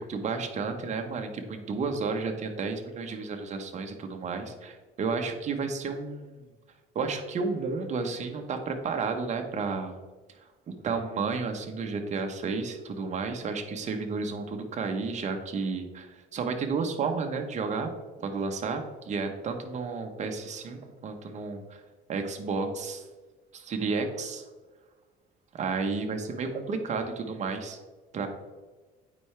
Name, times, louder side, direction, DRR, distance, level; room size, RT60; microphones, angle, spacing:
voice 1, 0.1-6.4 6.9-10.0 10.7-17.9 18.2-21.8 22.1-23.0 23.5-24.4 25.5-27.8 28.1-28.3, right 4 dB, 45° right, 5 dB, 1.0 m, -32 dB
8.7 x 4.8 x 3.3 m, 1.3 s
cardioid pair, 110°, 17 cm